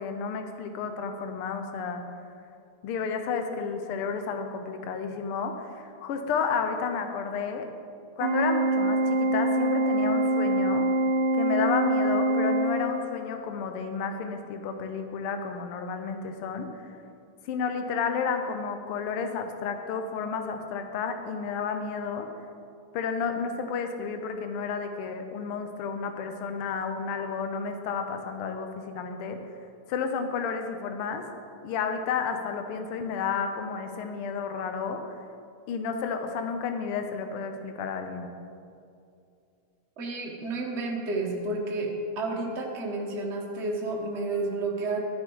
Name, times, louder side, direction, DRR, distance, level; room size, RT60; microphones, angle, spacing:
voice 1, 0.0-2.0 2.8-7.7 8.2-10.9 11.4-16.8 17.4-22.3 22.9-29.4 29.9-31.2 31.6-35.0 35.7-38.3, left 5 dB, 65° left, 6 dB, 1.5 m, -31 dB
Organ, 8.2-13.3, right 2 dB, 90° right, 1.1 m, -25 dB
voice 2, 40.0-45.0, right 2 dB, 70° right, -1 dB, 0.6 m, -31 dB
11.5 x 9.9 x 4.6 m, 2.5 s
omnidirectional pair, 3.3 m